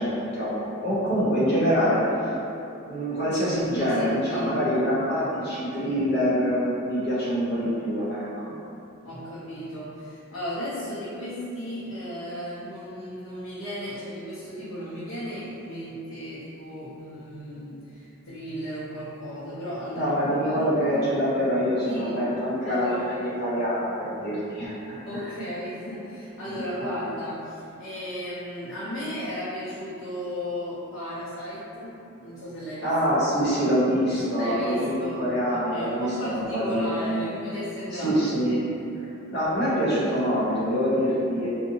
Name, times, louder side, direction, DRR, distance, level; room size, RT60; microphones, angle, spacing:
voice 1, 0.0-2.2 2.9-8.3 19.9-25.2 32.8-37.0 37.9-38.6 39.3-41.5, equal, 55° left, -10 dB, 0.9 m, -25 dB
voice 2, 3.5-4.8 9.0-21.1 21.8-22.2 22.7-23.3 25.0-32.9 34.4-38.6, equal, 80° left, -11 dB, 0.6 m, -35 dB
2.7 x 2.1 x 2.7 m, 2.7 s
head